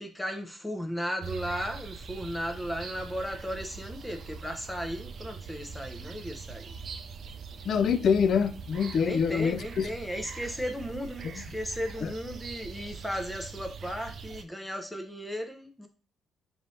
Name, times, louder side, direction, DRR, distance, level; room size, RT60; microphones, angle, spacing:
voice 1, 0.0-6.7 9.0-15.9, equal, 10° left, 0.5 m, -35 dB
sound 1, 1.2-14.4, right 5 dB, 55° right, 0.4 m, -42 dB
voice 2, 7.6-9.9 11.2-11.4 12.0-12.1, left 6 dB, 60° left, 0.3 m, -26 dB
4.3 x 2.7 x 3.1 m
cardioid pair, 90°, 0 cm